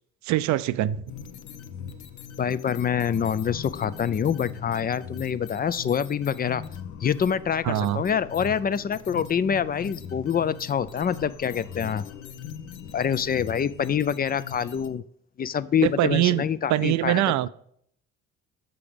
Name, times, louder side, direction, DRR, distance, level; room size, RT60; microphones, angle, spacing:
voice 1, 0.2-1.0 7.6-8.0 15.8-16.4 16.7-17.5, right 14 dB, 65° right, 16 dB, 0.5 m, -23 dB
sound 1, 1.1-14.9, left 7 dB, 65° left, 0.8 m, -41 dB
voice 2, 2.4-6.6 7.0-12.1 12.9-15.0 15.4-17.2, left 8 dB, 30° left, 16 dB, 0.4 m, -26 dB
6.9 x 6.0 x 5.0 m, 0.65 s
supercardioid pair, 70°, 31 cm